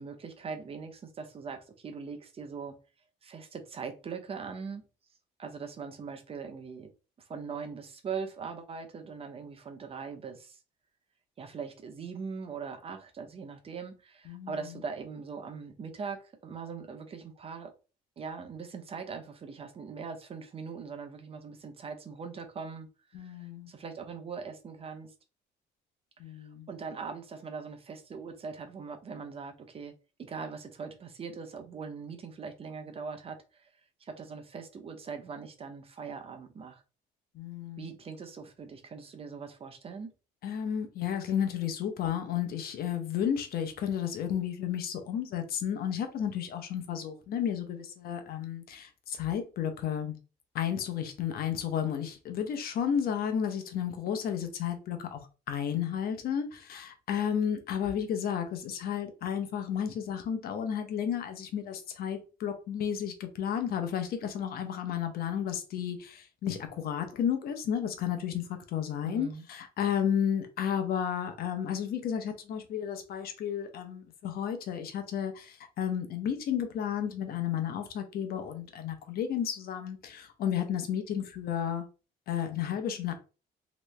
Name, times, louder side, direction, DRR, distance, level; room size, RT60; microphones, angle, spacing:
voice 1, 0.0-2.7 3.2-4.8 5.4-6.9 7.2-10.6 11.4-17.7 18.2-25.1 26.3-29.9 30.2-33.7 34.0-36.8 37.8-40.1 69.0-69.4, right 5 dB, 35° right, 0.7 m, -41 dB
voice 2, 14.3-14.6 23.1-23.7 26.2-26.7 37.3-37.9 40.4-50.2 50.5-55.2 55.5-81.8 82.3-83.1, left 8 dB, 65° left, 0.8 m, -32 dB
3.2 x 3.0 x 3.2 m
cardioid pair, 110°, 17 cm